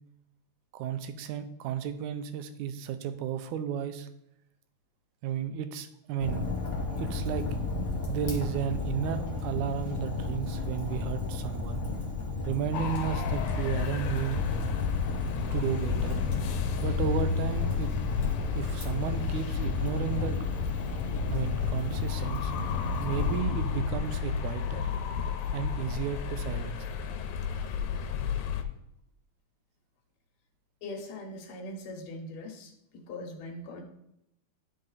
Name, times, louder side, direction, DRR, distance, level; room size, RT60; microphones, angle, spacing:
voice 1, 0.7-4.1 5.2-6.5 7.0-7.5 8.1-11.8 12.5-14.4 15.5-16.2 16.8-17.9 18.5-20.3 21.3-22.5 23.0-24.9 25.5-26.9, right 9 dB, 85° right, 9 dB, 2.1 m, -33 dB
Fire, 6.2-23.4, left 3 dB, 45° left, 1.1 m, -33 dB
sound 1, 12.7-28.6, left 7 dB, 90° left, 2.2 m, -32 dB
voice 2, 30.8-33.8, left 1 dB, 65° left, 1 dB, 2.3 m, -41 dB
11.5 x 3.8 x 4.0 m, 0.81 s
omnidirectional pair, 3.4 m